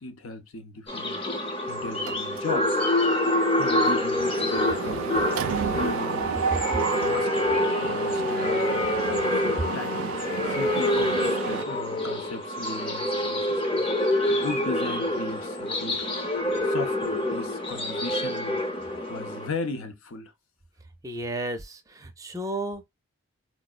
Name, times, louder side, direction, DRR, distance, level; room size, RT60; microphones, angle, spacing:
voice 1, 0.0-2.8 3.2-10.0 10.4-16.1 16.6-20.3, left 3 dB, 75° left, 0.6 m, -37 dB
sound 1, 0.9-19.5, left 1 dB, 25° left, 0.7 m, -26 dB
Mechanisms, 2.1-2.7 3.0-3.2 3.5-11.6, right 7 dB, 80° right, 0.3 m, -32 dB
voice 2, 21.0-22.9, right 1 dB, 15° right, 0.4 m, -33 dB
4.5 x 2.0 x 2.3 m
head